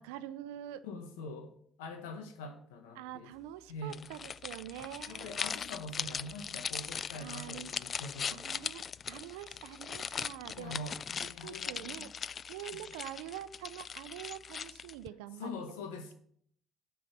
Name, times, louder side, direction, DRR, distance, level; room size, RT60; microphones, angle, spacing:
voice 1, 0.0-0.8 2.9-5.4 6.3-6.7 7.2-7.7 8.3-10.7 11.4-12.1 12.5-15.5, right 12 dB, 85° right, 0.6 m, -45 dB
voice 2, 0.8-3.3 3.7-4.1 5.1-8.7 10.5-12.1 15.4-16.1, left 2 dB, 85° left, 1.5 m, -44 dB
sound 1, 3.9-15.1, left 6 dB, 45° left, 0.3 m, -40 dB
8.9 x 5.3 x 7.0 m
hypercardioid pair, 65°, 0 cm